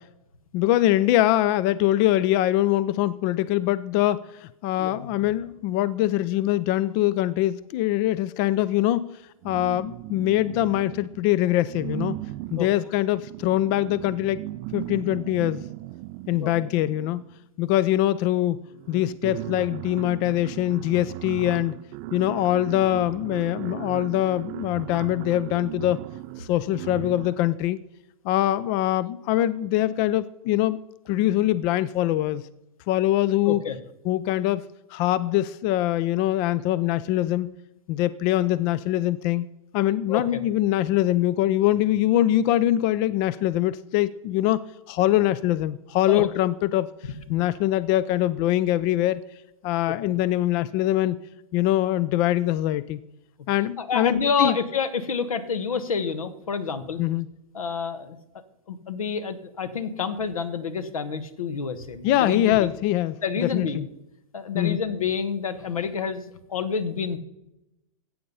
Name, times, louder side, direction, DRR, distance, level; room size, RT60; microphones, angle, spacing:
voice 1, 0.5-9.1 9.4-12.2 12.5-14.4 14.7-15.6 16.3-17.2 17.6-21.7 22.1-26.0 26.4-27.8 28.2-30.8 31.1-32.4 32.9-33.6 34.1-34.6 34.9-37.5 37.9-39.5 39.7-44.6 44.9-46.9 47.3-49.2 49.6-51.2 51.5-53.0 53.5-54.5 57.0-57.3 62.0-63.8 64.5-64.8, left 14 dB, 35° left, 18 dB, 0.4 m, -23 dB
voice 2, 4.8-5.1 12.6-12.7 16.4-16.5 33.4-33.8 40.1-40.4 46.1-46.3 49.9-50.2 53.8-57.0 57.5-58.2 58.7-62.7 63.2-63.9 64.3-67.2, left 6 dB, 80° left, 12 dB, 1.4 m, -28 dB
sound 1, 9.4-11.2 11.7-17.4 18.3-18.4 18.7-27.5, right 18 dB, 35° right, 0.4 m, -37 dB
14.5 x 8.3 x 5.5 m, 0.89 s
hypercardioid pair, 125°, 18 cm